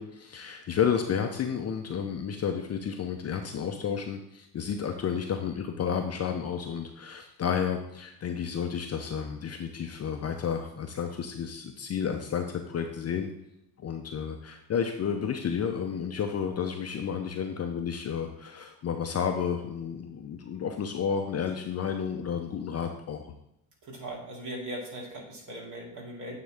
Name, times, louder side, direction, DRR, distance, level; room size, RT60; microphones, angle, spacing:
voice 1, 0.0-13.3 13.8-23.2, left 7 dB, 30° left, 4 dB, 0.7 m, -31 dB
voice 2, 23.8-26.4, right 1 dB, 40° right, -2 dB, 2.6 m, -39 dB
8.7 x 3.7 x 3.5 m, 0.81 s
hypercardioid pair, 80°, 48 cm